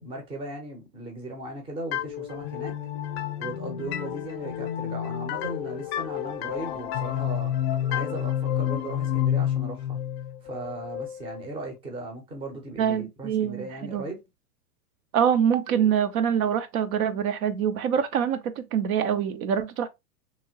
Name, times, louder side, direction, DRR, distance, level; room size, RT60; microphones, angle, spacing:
voice 1, 0.0-2.7 3.4-7.5 7.9-10.0 10.4-14.2, right 1 dB, 10° right, 0.5 m, -37 dB
sound 1, 1.9-11.4, left 10 dB, 45° left, 0.5 m, -30 dB
voice 2, 12.8-14.0 15.1-19.9, right 8 dB, 65° right, 0.5 m, -25 dB
2.9 x 2.7 x 2.7 m
hypercardioid pair, 130°, 47 cm